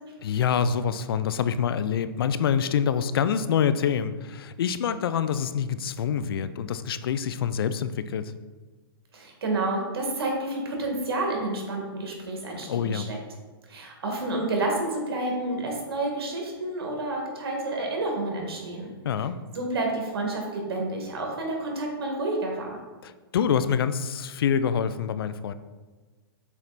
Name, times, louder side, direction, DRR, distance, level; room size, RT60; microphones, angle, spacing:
voice 1, 0.2-8.3 12.6-13.1 19.0-19.4 23.0-25.5, left 7 dB, 75° left, 13 dB, 0.4 m, -26 dB
voice 2, 9.1-13.2 13.7-18.9 19.5-22.8, right 2 dB, 80° right, 0 dB, 1.8 m, -29 dB
7.3 x 3.3 x 4.1 m, 1.3 s
hypercardioid pair, 150°, 13 cm